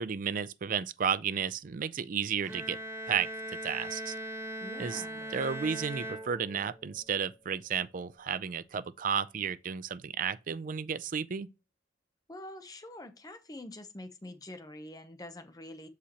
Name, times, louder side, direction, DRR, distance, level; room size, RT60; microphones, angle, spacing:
voice 1, 0.0-2.8 3.1-3.3 3.6-4.1 4.8-5.0 5.3-11.5, right 7 dB, 50° right, 0.4 m, -33 dB
Bowed string instrument, 2.4-6.9, equal, 20° right, 1.3 m, -40 dB
voice 2, 4.6-5.3 12.3-15.9, left 1 dB, 20° left, 0.7 m, -46 dB
Chink clink, 5.2-9.2, left 2 dB, 35° right, 2.4 m, -60 dB
6.9 x 4.9 x 2.9 m
head